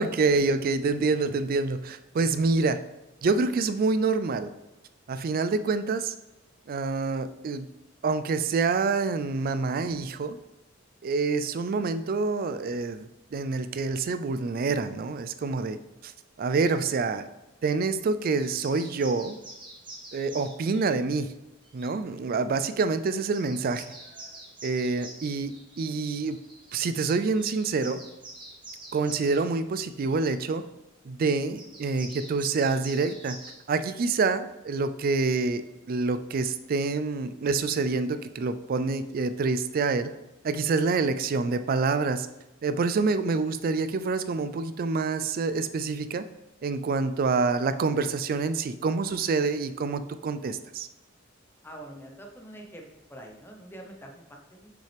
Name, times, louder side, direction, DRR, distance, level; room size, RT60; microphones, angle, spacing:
voice 1, 0.0-2.8 3.2-4.5 5.1-6.1 6.7-7.7 8.0-10.4 11.0-16.1 16.4-17.2 17.6-19.4 20.1-21.3 21.7-23.9 24.6-26.4 26.7-28.0 28.9-30.6 31.1-33.4 33.7-35.6 35.9-40.1 40.4-42.3 42.6-46.2 46.6-50.9, right 4 dB, 45° right, 11 dB, 0.3 m, -27 dB
sound 1, 18.3-20.8 21.6-21.9 22.8-22.9 23.0-29.4 30.0-30.4 31.6-33.5, right 2 dB, 25° right, 1.4 m, -46 dB
voice 2, 51.6-54.7, right 1 dB, 10° left, 1 dB, 0.8 m, -45 dB
6.1 x 5.6 x 3.3 m, 0.99 s
head